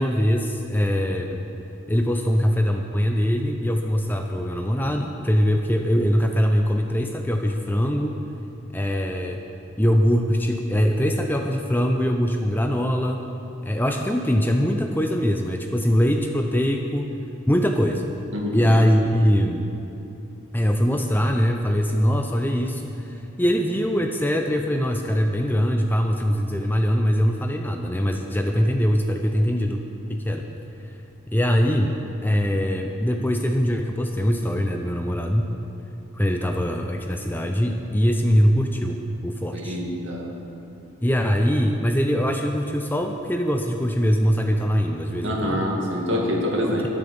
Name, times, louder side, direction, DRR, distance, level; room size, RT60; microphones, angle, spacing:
voice 1, 0.0-1.4 1.9-8.2 8.7-9.4 9.8-13.2 13.6-17.2 17.5-18.1 18.5-19.7 20.5-29.8 30.1-30.5 31.3-35.5 36.1-39.8 41.0-45.7 46.7-46.9, equal, 10° left, 3 dB, 0.6 m, -22 dB
voice 2, 18.3-18.7 39.5-40.3 45.2-46.9, equal, 60° right, -1 dB, 2.3 m, -26 dB
13.0 x 9.9 x 7.0 m, 2.8 s
head